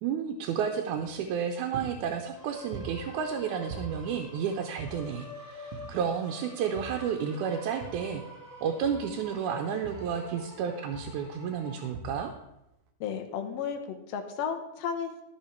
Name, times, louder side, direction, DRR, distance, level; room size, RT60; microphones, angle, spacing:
voice 1, 0.0-8.2 8.6-12.3, right 7 dB, 90° right, 4 dB, 2.1 m, -31 dB
sound 1, 1.1-1.4 1.7-3.4 3.7-5.3 5.7-6.3 6.8-8.3 8.8-10.6 10.9-11.4 11.9-12.5, right 5 dB, 70° right, 1.4 m, -44 dB
sound 2, 2.3-11.9, equal, 25° right, 0.4 m, -46 dB
voice 2, 13.0-15.2, left 7 dB, 65° left, 5 dB, 1.8 m, -33 dB
12.5 x 5.6 x 4.4 m, 0.90 s
omnidirectional pair, 3.4 m